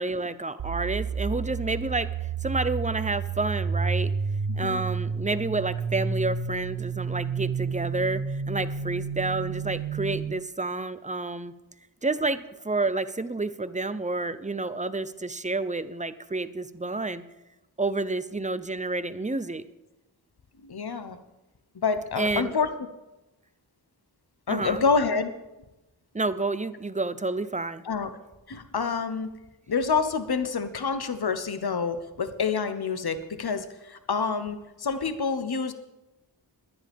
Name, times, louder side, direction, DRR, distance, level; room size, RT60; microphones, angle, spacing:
voice 1, 0.0-4.1 4.6-11.5 12.0-17.2 17.8-19.7 22.2-22.5 24.5-24.8 26.1-27.8, right 3 dB, 15° right, 13 dB, 0.7 m, -29 dB
sound 1, 0.6-10.3, right 5 dB, 80° right, 0.9 m, -30 dB
voice 2, 20.6-21.2 21.8-22.7 24.5-25.3 27.9-28.1 28.5-29.3 29.7-35.7, left 5 dB, 55° left, 10 dB, 1.0 m, -27 dB
21.5 x 9.9 x 3.6 m, 1.0 s
wide cardioid pair, 50°, 45 cm